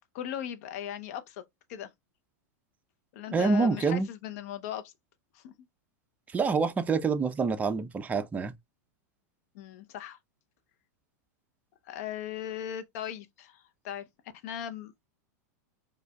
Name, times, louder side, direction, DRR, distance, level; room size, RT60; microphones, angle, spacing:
voice 1, 0.1-1.4 1.7-1.9 3.1-4.9 5.3-5.5 9.5-10.2 11.9-14.0 14.4-15.1, left 10 dB, 60° left, 0.7 m, -38 dB
voice 2, 3.3-4.1 6.3-8.5, right 4 dB, 15° right, 0.5 m, -26 dB
4.9 x 2.3 x 2.2 m
hypercardioid pair, 120°, 9 cm